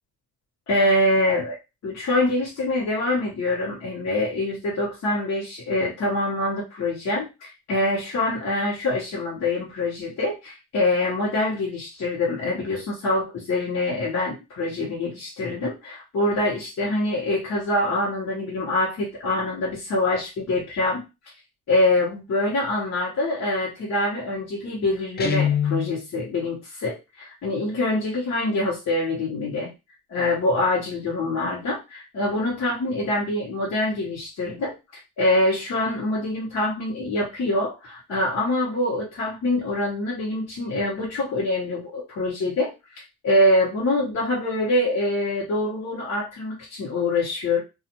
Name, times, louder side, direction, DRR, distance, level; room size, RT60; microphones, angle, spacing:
voice 1, 0.7-1.6 1.8-21.0 21.7-29.7 30.1-34.7 35.2-47.6, left 1 dB, 60° left, -5 dB, 1.1 m, -25 dB
Guitar, 25.2-26.0, left 8 dB, 35° left, 0.4 m, -23 dB
2.4 x 2.4 x 2.8 m, 0.26 s
cardioid pair, 90°, 30 cm